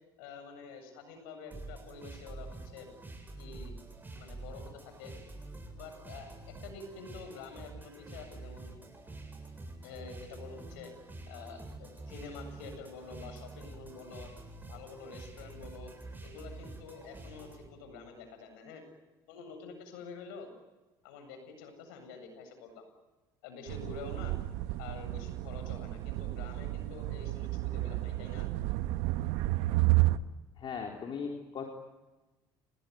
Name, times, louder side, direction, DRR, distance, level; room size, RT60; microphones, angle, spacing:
voice 1, 0.2-2.9 3.4-3.7 4.2-5.1 5.7-8.7 9.8-10.9 11.3-14.3 14.7-15.9 16.2-18.8 19.3-20.5 21.0-22.9 23.4-24.4 24.8-28.5, left 4 dB, 85° left, 7 dB, 7.8 m, -47 dB
sound 1, 1.5-17.6, right 2 dB, 20° right, 7.8 m, -47 dB
sound 2, 23.7-30.2, right 18 dB, 80° right, 1.1 m, -31 dB
voice 2, 30.6-31.7, left 6 dB, 50° left, 2 dB, 4.1 m, -38 dB
29.0 x 20.5 x 9.6 m, 1.1 s
supercardioid pair, 85°, 11 cm